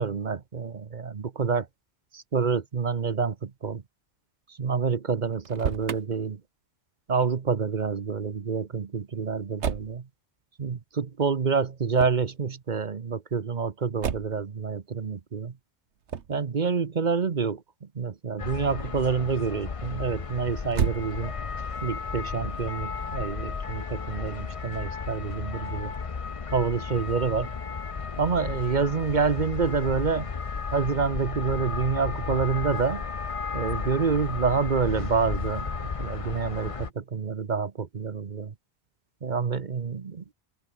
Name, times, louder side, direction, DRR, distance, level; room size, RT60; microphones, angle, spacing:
voice 1, 0.0-1.7 2.1-3.8 4.5-6.4 7.1-10.1 10.6-15.5 16.3-21.3 21.8-25.9 26.5-27.5 28.2-30.3 30.7-33.0 33.5-38.5 39.2-40.3, right 5 dB, 45° right, 1.0 m, -28 dB
Motor vehicle (road), 5.3-6.0 9.6-10.0 11.9-12.3 14.0-14.5 16.1-16.4 20.7-21.5, right 7 dB, 80° right, 1.4 m, -31 dB
sound 1, 18.4-36.9, left 5 dB, 35° left, 0.8 m, -34 dB
open air
omnidirectional pair, 1.1 m